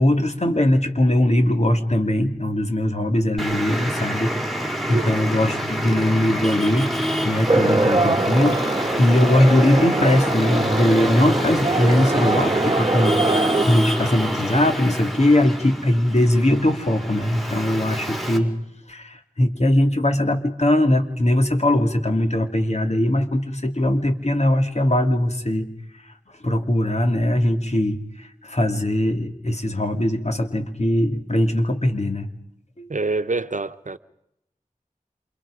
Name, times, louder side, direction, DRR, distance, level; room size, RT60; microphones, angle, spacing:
voice 1, 0.0-7.0 7.2-18.5 18.9-25.7 26.4-32.3 32.8-32.9, left 1 dB, 50° left, 2.9 m, -20 dB
Traffic noise roadway noise, 3.4-18.4, equal, ahead, 4.3 m, -27 dB
sound 1, 7.5-13.7, right 2 dB, 35° right, 1.3 m, -23 dB
voice 2, 32.9-34.0, right 3 dB, 60° right, 1.0 m, -25 dB
28.5 x 27.5 x 5.1 m
wide cardioid pair, 40°, 14 cm